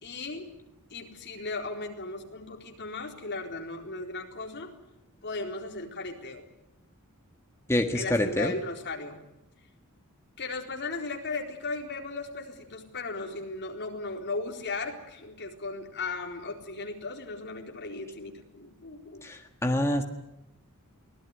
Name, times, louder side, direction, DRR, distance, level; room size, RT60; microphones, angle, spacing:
voice 1, 0.0-0.5 0.9-4.7 5.2-6.4 7.9-9.2 10.4-19.3, left 3 dB, 50° left, 2 dB, 4.1 m, -36 dB
voice 2, 7.7-8.5 19.2-20.0, left 1 dB, 10° left, 4 dB, 1.6 m, -26 dB
24.5 x 18.0 x 9.8 m, 0.87 s
head